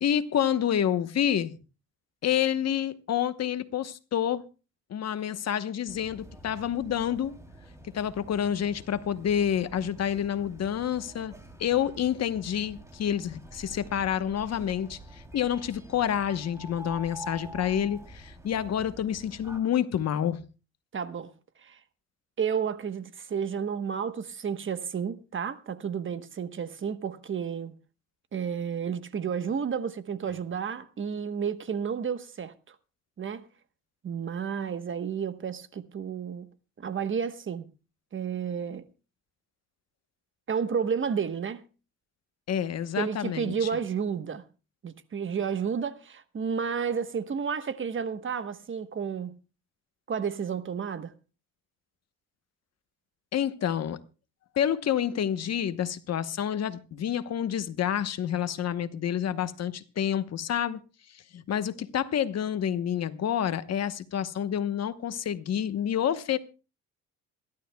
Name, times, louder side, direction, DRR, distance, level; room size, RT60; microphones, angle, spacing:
voice 1, 0.0-1.6 2.2-4.4 4.9-7.3 7.9-11.3 11.6-20.4 42.5-43.7 53.3-54.0 54.5-60.8 61.1-66.4, left 9 dB, 55° left, 1.0 m, -28 dB
sound 1, 5.9-19.6, right 1 dB, 10° right, 3.0 m, -47 dB
voice 2, 20.9-21.3 21.6-21.8 22.4-27.8 28.3-32.7 33.2-33.5 34.0-36.5 36.8-37.7 38.1-38.9 40.5-41.6 42.9-44.4 44.8-49.4 50.1-51.1, right 7 dB, 40° right, 1.1 m, -31 dB
27.0 x 11.5 x 2.3 m
cardioid pair, 90°, 30 cm